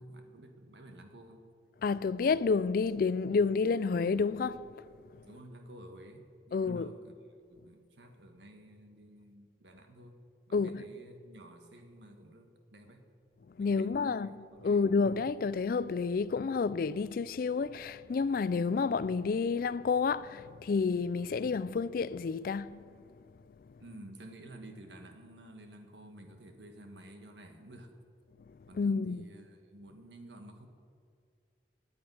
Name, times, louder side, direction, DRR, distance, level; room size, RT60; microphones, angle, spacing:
voice 1, 0.0-1.4 5.2-7.1 7.5-10.2 10.5-13.0 13.6-15.2 23.8-27.9 28.7-30.7, right 1 dB, 85° right, 1.4 m, -52 dB
voice 2, 1.8-4.8 6.5-6.9 10.5-10.8 13.6-14.4 14.6-23.0 28.8-29.2, left 4 dB, 55° left, 0.3 m, -30 dB
9.4 x 8.9 x 9.3 m
head